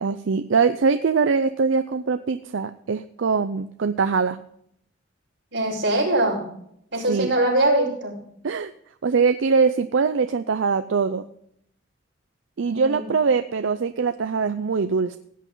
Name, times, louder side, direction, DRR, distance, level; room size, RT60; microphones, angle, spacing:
voice 1, 0.0-4.4 6.9-7.3 8.4-8.7 9.0-11.3 12.6-15.2, right 5 dB, 80° right, 10 dB, 0.5 m, -22 dB
voice 2, 5.5-6.4 6.9-8.1 12.7-13.0, right 1 dB, 60° right, -5 dB, 4.9 m, -22 dB
16.5 x 8.4 x 3.8 m, 0.70 s
head